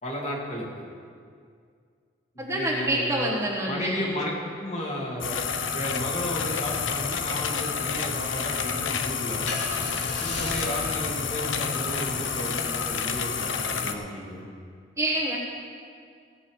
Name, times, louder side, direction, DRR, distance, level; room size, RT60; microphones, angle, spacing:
voice 1, 0.0-0.7 2.3-3.3 3.7-4.3 4.6-5.4 5.7-9.6 10.2-14.5, left 1 dB, 35° left, -3 dB, 2.5 m, -33 dB
voice 2, 2.4-4.0 15.0-15.4, right 1 dB, 15° right, -4 dB, 1.5 m, -27 dB
sound 1, 5.2-14.0, left 6 dB, 90° left, 0.8 m, -29 dB
Car / Engine starting, 9.5-13.7, left 1 dB, 65° left, 2.7 m, -38 dB
16.5 x 5.6 x 8.0 m, 2.2 s
head